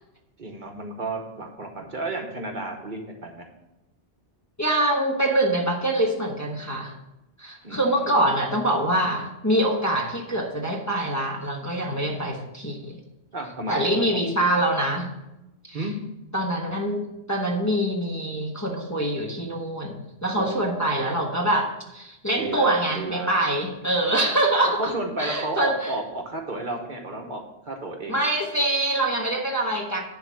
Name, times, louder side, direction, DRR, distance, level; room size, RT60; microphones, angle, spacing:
voice 1, 0.4-3.4 7.6-8.3 13.3-14.2 15.7-15.9 20.3-21.1 22.4-23.5 24.8-28.3, right 2 dB, 50° right, 2 dB, 1.1 m, -33 dB
voice 2, 4.6-6.9 7.4-13.0 13.7-15.1 15.7-15.8 16.3-25.9 28.1-30.0, right 1 dB, 15° left, -2 dB, 1.1 m, -25 dB
10.5 x 3.7 x 7.4 m, 0.93 s
omnidirectional pair, 1.1 m